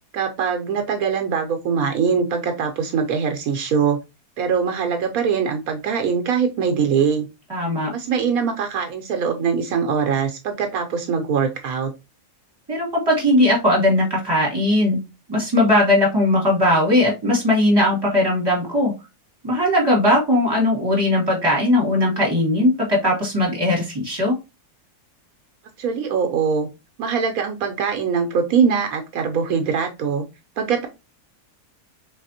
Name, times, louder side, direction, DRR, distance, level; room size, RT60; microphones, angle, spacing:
voice 1, 0.1-4.0 4.4-7.3 7.9-11.9 25.8-26.7 27.0-30.2 30.6-30.9, right 6 dB, 80° right, 5 dB, 1.1 m, -22 dB
voice 2, 7.5-7.9 12.7-15.0 15.3-18.9 19.4-24.4, left 1 dB, 15° right, -3 dB, 2.0 m, -19 dB
4.1 x 3.3 x 2.7 m, 0.25 s
omnidirectional pair, 1.5 m